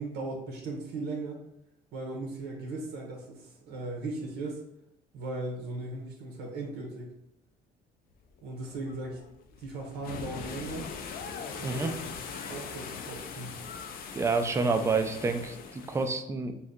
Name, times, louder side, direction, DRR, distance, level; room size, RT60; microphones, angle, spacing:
voice 1, 0.0-1.4 1.9-4.6 5.1-7.1 8.4-9.2 9.6-10.9 11.6-13.6, right 2 dB, 75° right, 1 dB, 0.7 m, -38 dB
sound 1, 8.4-16.1, left 6 dB, 60° left, 0.4 m, -41 dB
voice 2, 11.6-11.9 14.1-16.6, right 4 dB, 15° right, 6 dB, 0.3 m, -28 dB
2.7 x 2.3 x 3.5 m, 0.83 s
cardioid pair, 110°, 17 cm